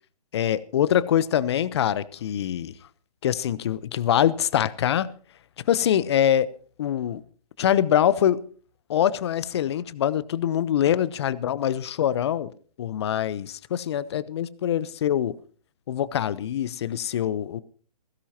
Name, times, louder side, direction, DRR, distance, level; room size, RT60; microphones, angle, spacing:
voice 1, 0.3-2.7 3.2-5.1 5.7-6.5 6.8-7.2 7.6-8.4 8.9-12.5 12.8-15.3 15.9-17.6, left 10 dB, 40° left, 0.9 m, -24 dB
20.0 x 16.5 x 2.9 m
hypercardioid pair, 145°, 20 cm